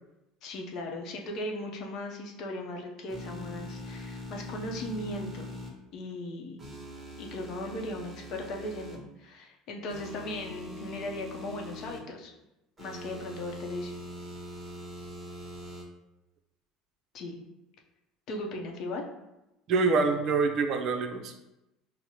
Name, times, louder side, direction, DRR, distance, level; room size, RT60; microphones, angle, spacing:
voice 1, 0.4-5.5 5.9-6.6 7.2-12.3 12.8-13.9 17.1-17.4 18.3-19.0, left 1 dB, 60° left, 1 dB, 0.7 m, -37 dB
sound 1, 3.1-5.7 6.6-9.0 9.9-12.0 12.8-15.8, left 1 dB, 20° right, 1.1 m, -42 dB
voice 2, 19.7-21.4, right 4 dB, 55° right, 5 dB, 0.5 m, -26 dB
4.6 x 2.1 x 2.8 m, 0.94 s
supercardioid pair, 85°, 0 cm